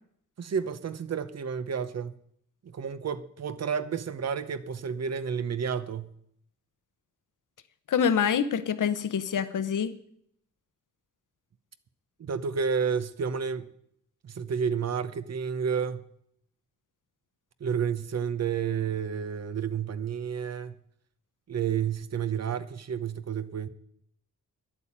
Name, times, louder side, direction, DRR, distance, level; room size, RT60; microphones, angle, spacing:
voice 1, 0.4-2.2 2.6-6.1 12.2-13.7 14.2-16.0 17.6-20.8 21.5-23.7, right 7 dB, 55° right, 0.9 m, -30 dB
voice 2, 7.9-9.9, left 7 dB, 80° left, 1.0 m, -26 dB
11.0 x 8.6 x 8.7 m
wide cardioid pair, 175°, 31 cm